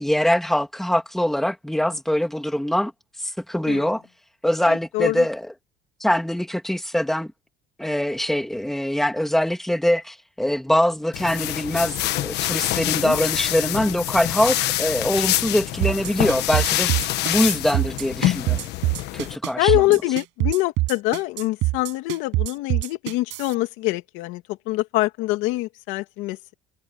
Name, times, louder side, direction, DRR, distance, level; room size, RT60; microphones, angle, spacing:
voice 1, 0.0-2.9 3.2-4.0 4.4-5.5 6.0-7.3 7.8-16.9 17.2-18.7 19.1-19.8, left 1 dB, ahead, 2.7 m, -23 dB
voice 2, 4.6-5.2 12.7-13.2 19.6-26.5, left 18 dB, 75° left, 2.5 m, -24 dB
sound 1, 11.1-19.4, left 15 dB, 55° left, 1.3 m, -26 dB
sound 2, 15.8-23.5, right 20 dB, 65° right, 6.3 m, -24 dB
cardioid pair, 165°, 21 cm